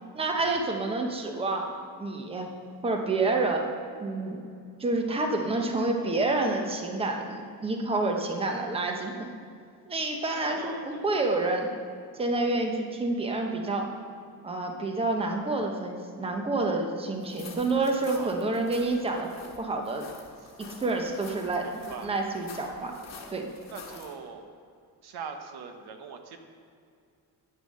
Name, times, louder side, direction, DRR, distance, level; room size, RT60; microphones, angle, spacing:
voice 1, 0.1-2.5 2.8-3.7 4.0-4.4 4.8-9.3 9.9-11.7 12.1-13.9 14.4-19.3 19.6-20.1 20.8-22.9 23.3-23.5, right 2 dB, 15° right, 3 dB, 0.9 m, -28 dB
voice 2, 10.2-11.1 18.1-18.4 21.6-22.1 23.7-24.5 25.0-26.4, right 5 dB, 85° right, 6 dB, 1.1 m, -42 dB
sound 1, 17.2-24.2, left 4 dB, 45° left, 1.5 m, -48 dB
9.5 x 6.8 x 6.5 m, 2.4 s
cardioid pair, 160°, 37 cm